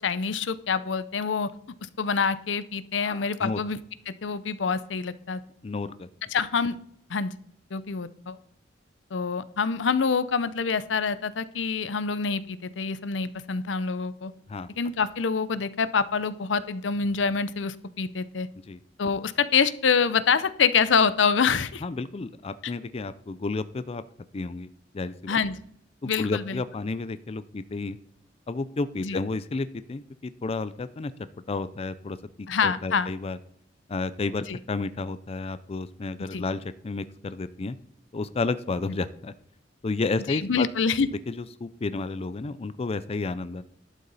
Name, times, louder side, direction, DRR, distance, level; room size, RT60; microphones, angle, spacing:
voice 1, 0.0-1.5 2.0-3.8 4.1-5.4 6.3-6.8 7.1-7.3 7.7-8.4 9.1-14.3 14.8-18.5 19.0-21.8 22.6-22.7 25.3-25.6 26.0-26.6 29.0-29.2 32.5-33.1 34.5-34.6 36.3-36.4 40.3-41.1, left 5 dB, 85° left, 15 dB, 0.6 m, -26 dB
voice 2, 3.0-3.6 5.6-6.1 14.5-14.7 18.7-18.8 21.8-24.0 24.3-24.7 24.9-25.4 26.0-28.0 28.5-31.1 31.5-33.4 33.9-37.8 38.1-39.3 39.8-40.7 41.1-43.6, left 3 dB, 35° left, 14 dB, 0.4 m, -31 dB
11.5 x 8.2 x 4.1 m, 0.68 s
head